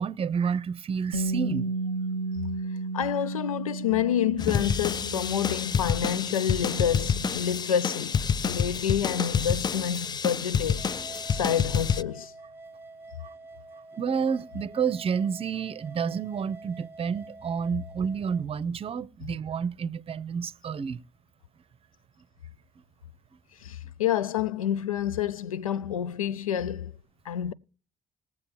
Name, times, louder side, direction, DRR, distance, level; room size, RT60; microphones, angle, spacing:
voice 1, 0.0-1.7 13.9-21.0, right 6 dB, 35° right, 0.7 m, -30 dB
Bass guitar, 1.1-7.4, right 3 dB, 85° right, 0.5 m, -34 dB
voice 2, 2.9-8.2 8.4-10.8 11.3-12.3 23.6-26.9 27.3-27.5, left 9 dB, 80° left, 0.5 m, -28 dB
sound 1, 4.4-12.0, left 7 dB, 25° left, 0.4 m, -28 dB
sound 2, 10.8-18.4, right 2 dB, 15° right, 1.2 m, -47 dB
21.0 x 7.5 x 3.1 m
figure-of-eight pair, 50°, 18 cm